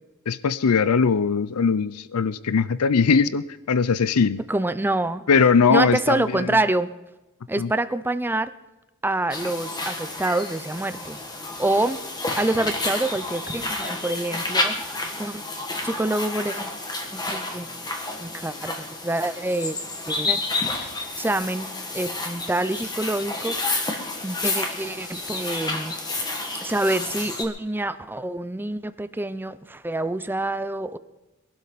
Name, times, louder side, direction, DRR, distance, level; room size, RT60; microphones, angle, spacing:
voice 1, 0.3-4.4 5.3-6.6 7.6-7.7, left 5 dB, 85° left, 0.5 m, -20 dB
voice 2, 4.5-5.2 5.7-6.9 7.5-8.5 9.0-11.2 11.6-12.0 12.3-14.8 15.2-15.4 15.8-16.7 17.1-17.7 18.2-19.8 20.1-20.4 20.8-20.9 21.2-21.7 21.9-23.8 24.2-25.9 26.6-31.0, right 2 dB, 10° right, 0.6 m, -26 dB
sound 1, 9.3-27.4, left 2 dB, 20° left, 1.8 m, -30 dB
22.0 x 12.0 x 4.1 m
head